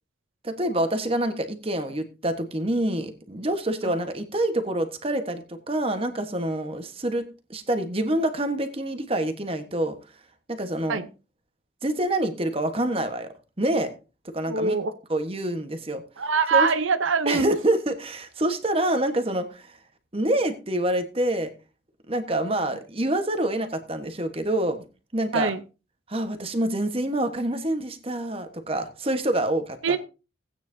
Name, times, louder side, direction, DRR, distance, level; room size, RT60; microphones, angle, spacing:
voice 1, 0.4-7.2 7.5-10.0 10.5-11.0 11.8-13.3 13.6-13.9 14.2-14.8 15.1-16.0 16.5-16.7 17.3-19.7 20.1-21.5 22.1-24.8 25.1-25.5 26.1-30.0, right 1 dB, 30° right, 8 dB, 1.3 m, -26 dB
voice 2, 14.5-14.9 16.2-17.6 25.3-25.6 29.8-30.0, right 5 dB, 85° right, 10 dB, 0.8 m, -23 dB
17.0 x 9.1 x 2.7 m, 0.31 s
head